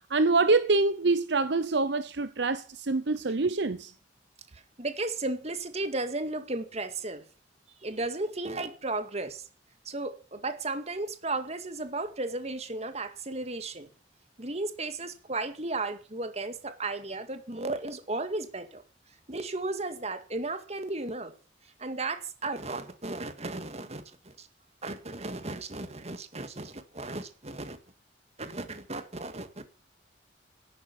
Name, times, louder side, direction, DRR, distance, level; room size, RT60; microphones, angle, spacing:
voice 1, 0.1-3.9, right 3 dB, 65° right, 0.8 m, -25 dB
voice 2, 4.5-7.3 7.8-9.4 9.9-13.9 14.4-18.8 19.3-21.3 21.8-24.5 24.8-27.8 28.4-29.7, right 2 dB, 35° right, 2.0 m, -34 dB
14.0 x 11.5 x 6.0 m
head